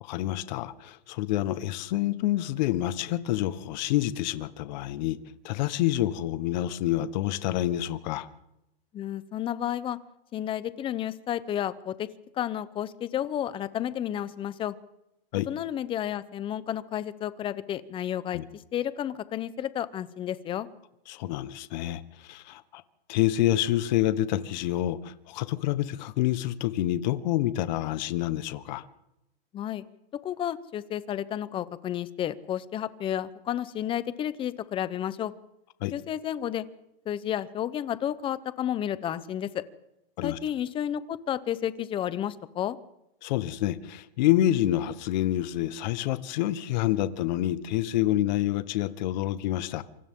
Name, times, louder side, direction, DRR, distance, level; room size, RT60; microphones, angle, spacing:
voice 1, 0.0-5.2 5.4-8.3 15.3-15.5 18.3-18.4 21.1-22.8 23.1-28.8 35.8-35.9 40.2-40.4 43.2-49.8, left 14 dB, 45° left, 13 dB, 1.4 m, -27 dB
voice 2, 8.9-10.0 10.3-12.1 12.3-14.7 15.5-20.7 29.5-29.8 30.2-35.3 35.9-36.6 37.1-39.6 40.2-42.8, left 10 dB, 15° left, 16 dB, 0.8 m, -31 dB
27.0 x 25.5 x 3.8 m, 0.86 s
hypercardioid pair, 150°, 30 cm